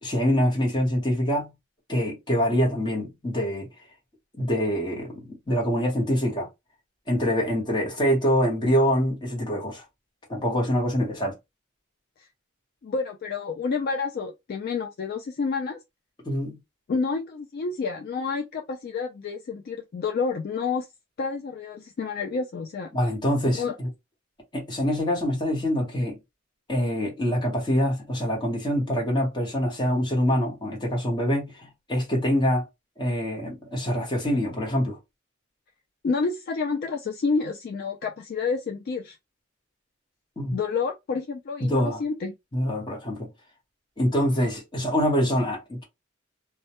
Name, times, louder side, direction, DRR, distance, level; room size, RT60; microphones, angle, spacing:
voice 1, 0.0-1.5 1.9-3.7 4.4-6.5 7.1-9.8 10.3-11.3 16.2-16.6 22.9-23.9 24.5-26.2 26.7-32.6 33.0-35.0 40.4-40.6 41.6-42.0 42.5-43.3 44.0-45.8, equal, 20° left, 0.9 m, -25 dB
voice 2, 12.8-15.8 16.9-20.9 21.2-22.9 23.5-23.7 36.0-39.2 40.5-42.3, left 4 dB, 50° left, 0.3 m, -29 dB
2.2 x 2.1 x 2.8 m
head